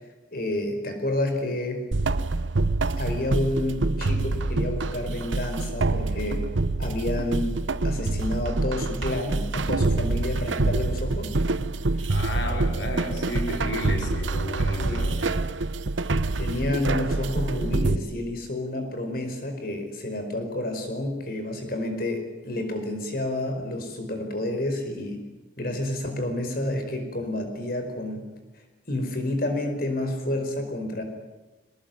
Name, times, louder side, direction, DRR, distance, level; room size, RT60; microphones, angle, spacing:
voice 1, 0.3-1.8 3.0-6.5 6.8-7.6 7.8-11.4 12.0-12.1 14.8-15.1 16.4-25.3 25.6-28.3 28.9-31.0, left 1 dB, 50° left, 6 dB, 4.9 m, -29 dB
sound 1, 1.9-18.0, right 2 dB, 85° right, 0.9 m, -26 dB
voice 2, 12.1-15.4, equal, 75° left, 1 dB, 5.1 m, -32 dB
22.0 x 19.5 x 9.2 m, 1.1 s
head